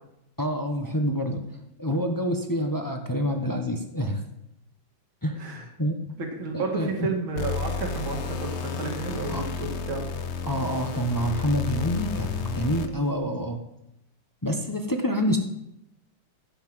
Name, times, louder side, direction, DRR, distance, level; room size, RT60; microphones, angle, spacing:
voice 1, 0.4-1.4 1.8-4.2 5.2-5.4 5.8-5.9 6.5-7.1 9.3-9.4 10.4-13.6 14.4-15.4, equal, 20° left, 4 dB, 0.5 m, -27 dB
voice 2, 5.4-5.9 6.2-10.0, right 3 dB, 65° right, 1 dB, 2.9 m, -32 dB
sound 1, 7.4-13.1, left 5 dB, 70° left, 0.6 m, -32 dB
16.0 x 5.9 x 7.7 m, 0.82 s
omnidirectional pair, 2.4 m